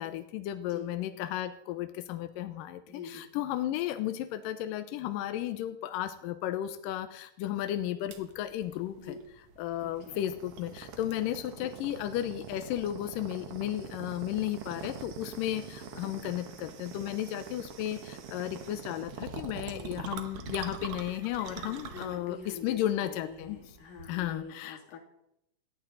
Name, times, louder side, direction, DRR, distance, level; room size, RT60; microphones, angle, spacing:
voice 1, 0.0-9.2 9.6-22.4 22.6-23.6 24.1-24.8, left 12 dB, 80° left, 10 dB, 2.1 m, -34 dB
voice 2, 2.9-3.2 9.0-9.2 9.8-10.2 11.6-11.7 19.7-20.1 21.6-25.0, left 5 dB, 60° left, 2 dB, 4.0 m, -45 dB
sound 1, 8.1-24.4, right 6 dB, 75° right, 1.3 m, -44 dB
17.5 x 13.5 x 3.9 m, 0.80 s
omnidirectional pair, 4.6 m